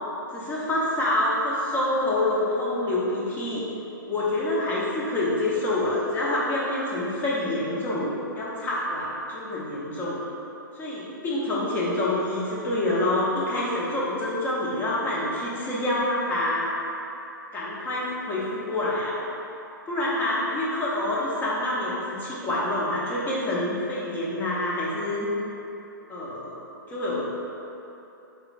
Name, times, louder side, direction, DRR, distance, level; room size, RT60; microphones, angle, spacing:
voice 1, 0.3-3.6 4.1-10.2 10.8-16.7 17.5-19.2 19.9-25.3 26.1-26.6 26.9-27.3, left 1 dB, 15° left, -6 dB, 0.9 m, -27 dB
5.0 x 3.8 x 2.4 m, 3.0 s
figure-of-eight pair, 115°, 11 cm